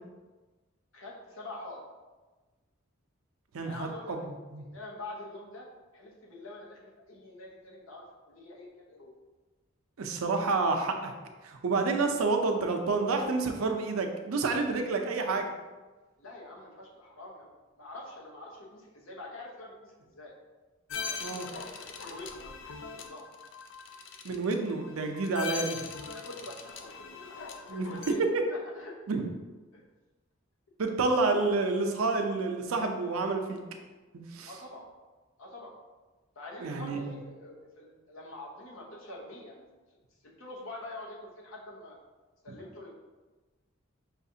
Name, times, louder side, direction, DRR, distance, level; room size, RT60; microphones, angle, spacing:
voice 1, 0.9-1.8 3.6-5.7 5.9-6.8 7.1-9.1 16.2-17.5 17.8-20.3 21.0-23.3 26.0-28.9 29.7-29.8 34.5-34.9 35.4-35.7 36.3-39.6 40.2-42.0 42.4-42.9, left 2 dB, 75° left, -2 dB, 0.9 m, -46 dB
voice 2, 3.5-4.2 4.5-4.7 10.0-11.1 11.4-15.5 21.2-21.5 24.2-25.9 27.7-28.1 29.1-29.2 30.8-33.6 34.1-34.5 36.6-37.2 42.5-42.6, right 3 dB, 90° right, 4 dB, 0.5 m, -29 dB
sound 1, 20.9-28.1, left 5 dB, 60° left, 0.4 m, -41 dB
5.7 x 2.4 x 2.7 m, 1.2 s
head